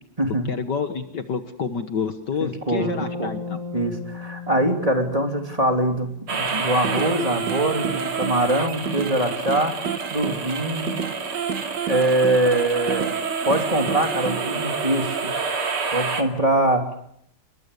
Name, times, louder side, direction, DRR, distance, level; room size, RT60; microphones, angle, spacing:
voice 1, 0.5-3.6, left 6 dB, 55° left, 8 dB, 1.8 m, -28 dB
voice 2, 2.4-2.9 3.2-3.3 3.7-9.8 10.1-10.9 11.9-13.1 13.4-15.3 15.9-16.8, right 1 dB, 15° right, 3 dB, 3.1 m, -23 dB
Bass guitar, 2.8-6.9, left 3 dB, 40° right, 8.5 m, -36 dB
sound 1, 6.3-16.2, right 5 dB, 85° right, 3.4 m, -28 dB
sound 2, 6.5-7.2 7.5-9.2 9.5-11.2 11.5-13.2 13.5-14.4, right 7 dB, 60° right, 2.1 m, -31 dB
28.5 x 22.5 x 6.8 m, 0.71 s
omnidirectional pair, 2.3 m